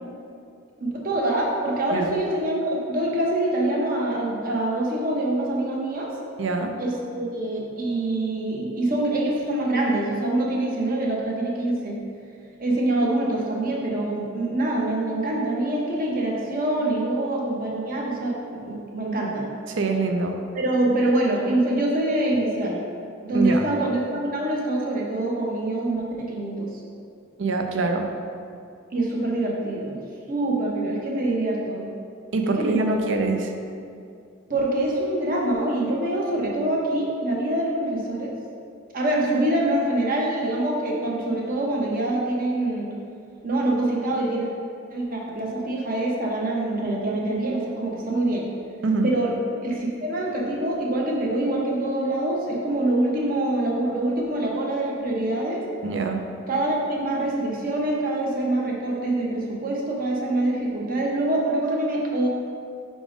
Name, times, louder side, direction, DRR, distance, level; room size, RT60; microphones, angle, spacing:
voice 1, 0.8-6.1 6.8-12.0 12.6-19.5 20.5-22.8 23.2-26.8 28.9-30.0 30.3-31.9 32.4-33.0 34.5-38.3 38.9-42.9 43.4-44.5 44.9-48.5 49.0-49.3 49.6-55.6 56.5-62.3, right 1 dB, 45° right, -2 dB, 0.9 m, -25 dB
voice 2, 6.4-6.8 19.7-20.4 23.3-23.6 27.4-28.1 32.3-33.5 48.8-49.1 55.8-56.2, right 3 dB, 65° right, 4 dB, 0.5 m, -24 dB
5.0 x 3.7 x 5.0 m, 2.4 s
head